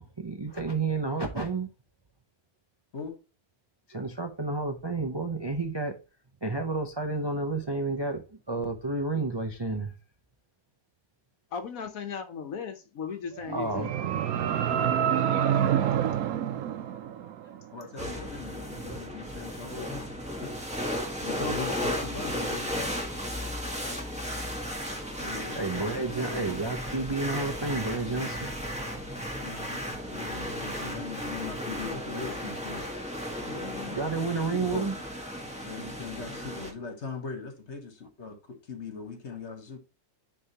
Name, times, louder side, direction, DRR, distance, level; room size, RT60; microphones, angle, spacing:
voice 1, 0.0-1.7 3.9-6.0 6.4-9.9 13.5-14.2 17.6-17.7 25.5-28.5 33.9-34.9, right 3 dB, 30° right, 0.4 m, -31 dB
voice 2, 11.5-13.9 14.8-15.0 23.7-24.0 33.4-34.0, left 6 dB, 65° left, 1.2 m, -37 dB
sound 1, 13.4-17.6, right 9 dB, 70° right, 1.1 m, -27 dB
voice 3, 17.7-20.5 21.2-22.9 25.2-25.8 26.3-26.5 29.4-32.9 34.6-34.8 35.6-39.8, left 4 dB, 50° left, 1.6 m, -40 dB
sound 2, 18.0-36.7, equal, 5° right, 1.3 m, -35 dB
9.9 x 3.4 x 2.9 m
omnidirectional pair, 1.6 m